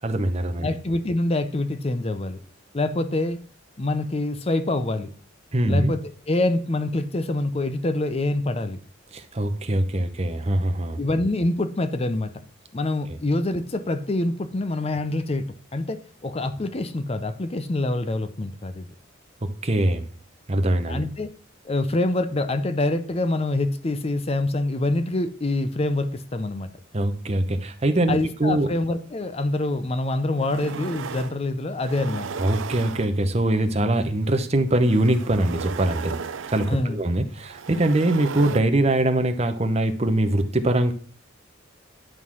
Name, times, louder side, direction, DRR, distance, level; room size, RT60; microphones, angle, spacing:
voice 1, 0.0-0.7 5.5-5.9 9.1-11.0 13.1-13.2 19.6-20.0 20.5-21.0 26.9-28.7 32.4-36.1 36.5-40.9, right 1 dB, 30° right, 8 dB, 0.8 m, -22 dB
voice 2, 0.6-2.4 2.7-3.4 3.8-5.1 5.7-8.8 11.0-12.3 12.7-15.5 15.7-18.9 20.9-21.3 21.6-26.7 28.1-32.3 36.7-37.0, left 2 dB, 30° left, 10 dB, 0.6 m, -25 dB
sound 1, 29.7-29.8 30.2-31.4 31.8-33.4 34.6-38.6, right 5 dB, 70° right, 0.5 m, -35 dB
11.0 x 3.8 x 6.1 m, 0.43 s
head